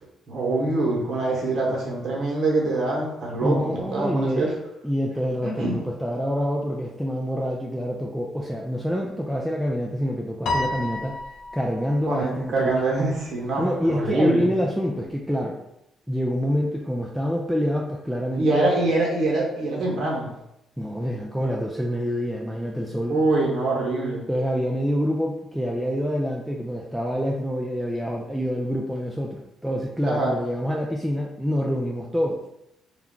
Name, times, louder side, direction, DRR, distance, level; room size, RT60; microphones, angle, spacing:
voice 1, 0.3-4.5 5.4-5.8 12.0-14.5 18.4-20.3 23.1-24.3 30.0-30.3, right 2 dB, 60° right, -3 dB, 0.9 m, -24 dB
voice 2, 3.4-4.5 4.8-11.2 11.5-12.7 13.6-15.6 16.1-18.7 20.8-23.2 24.3-32.4, equal, 5° right, -2 dB, 0.3 m, -26 dB
Piano, 10.5-12.0, left 2 dB, 60° left, 0.5 m, -29 dB
2.3 x 2.2 x 3.6 m, 0.84 s
cardioid pair, 90°, 0 cm